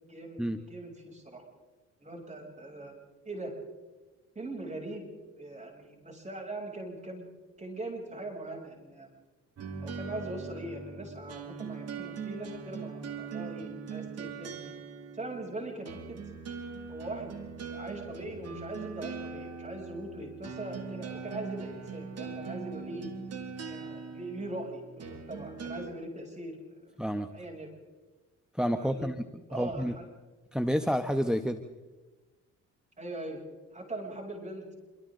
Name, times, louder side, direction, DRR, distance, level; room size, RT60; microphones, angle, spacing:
voice 1, 0.1-0.4 0.7-1.4 2.0-2.9 3.2-3.5 4.3-5.1 5.4-7.3 7.6-9.1 9.8-14.7 15.1-16.2 16.9-17.3 17.7-23.1 23.7-26.9 27.3-27.7 28.8-29.1 29.5-30.1 33.0-33.4 33.7-34.6, right 2 dB, 25° right, 0 dB, 7.6 m, -41 dB
sound 1, 9.6-25.9, right 5 dB, 55° right, 2.7 m, -41 dB
voice 2, 28.5-29.3 29.5-29.9 30.5-31.6, equal, ahead, 7 dB, 1.1 m, -29 dB
27.0 x 25.0 x 3.9 m, 1.2 s
cardioid pair, 90°, 30 cm